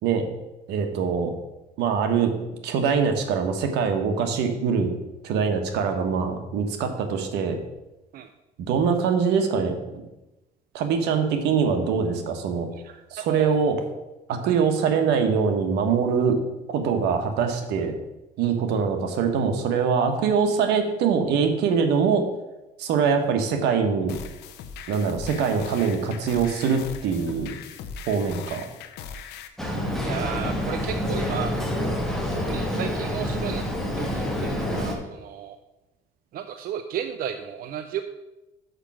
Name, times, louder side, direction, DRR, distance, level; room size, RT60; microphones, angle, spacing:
voice 1, 0.7-1.3 1.8-2.3 2.6-4.9 5.2-7.6 8.6-10.0 10.7-12.7 13.1-13.8 14.3-16.4 16.7-17.9 18.4-22.2 22.8-24.2 24.9-27.5 28.1-28.6, right 6 dB, 85° right, 5 dB, 1.3 m, -23 dB
voice 2, 12.7-13.6 14.4-14.6 30.0-31.5 32.3-33.6 33.9-35.6 36.3-38.0, right 9 dB, 60° right, 8 dB, 0.5 m, -34 dB
sound 1, 24.1-29.5, left 6 dB, 80° left, 0.8 m, -39 dB
Boat Water vehicle, 29.6-34.9, equal, ahead, 1.7 m, -27 dB
6.6 x 5.8 x 6.2 m, 1.0 s
cardioid pair, 110°, 17 cm